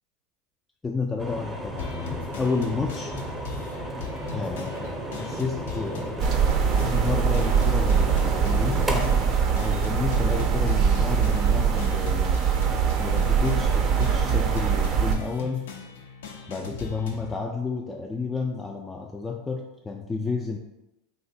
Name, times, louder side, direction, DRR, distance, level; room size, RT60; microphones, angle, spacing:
voice 1, 0.8-3.1 4.3-6.3 6.8-9.3 9.6-12.4 13.0-15.7 16.5-20.6, left 4 dB, 15° left, 0 dB, 0.3 m, -31 dB
sound 1, 1.2-12.3, right 1 dB, 10° right, 0.7 m, -35 dB
sound 2, 1.8-17.3, left 4 dB, 80° left, 0.4 m, -39 dB
sound 3, 6.2-15.2, right 7 dB, 50° right, 0.4 m, -22 dB
2.7 x 2.2 x 4.0 m, 0.93 s
hypercardioid pair, 95°, 0 cm